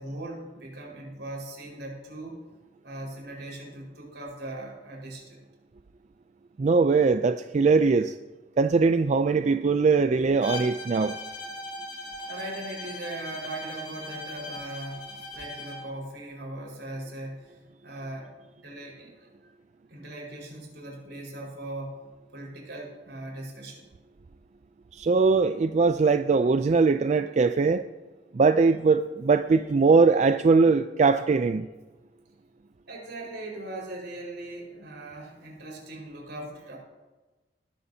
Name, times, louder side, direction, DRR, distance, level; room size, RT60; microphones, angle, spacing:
voice 1, 0.0-2.4 2.8-5.4 12.3-18.3 18.6-19.5 19.9-22.0 22.3-23.9 32.9-36.8, right 1 dB, 75° right, -2 dB, 4.8 m, -39 dB
voice 2, 6.6-8.1 8.6-11.1 24.9-27.8 28.3-31.7, right 4 dB, 40° right, 9 dB, 0.4 m, -21 dB
Bowed string instrument, 10.4-15.9, left 1 dB, 85° left, 3.2 m, -39 dB
20.0 x 11.0 x 2.8 m, 1.2 s
head